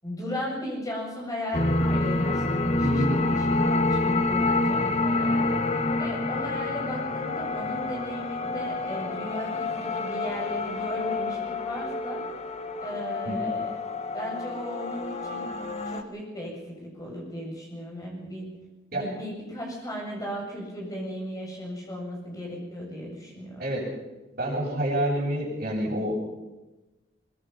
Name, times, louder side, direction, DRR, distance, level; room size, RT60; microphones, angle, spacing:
voice 1, 0.0-5.6 6.0-12.2 12.8-13.7 14.1-15.5 15.8-18.5 18.9-23.6, equal, 20° left, -2 dB, 7.4 m, -36 dB
sound 1, 1.5-16.0, left 2 dB, 35° left, 1.4 m, -28 dB
voice 2, 2.8-3.1 13.3-13.4 18.9-19.0 23.6-23.8 24.3-26.3, right 1 dB, 50° right, -9 dB, 7.6 m, -27 dB
23.5 x 21.5 x 5.8 m, 1.1 s
head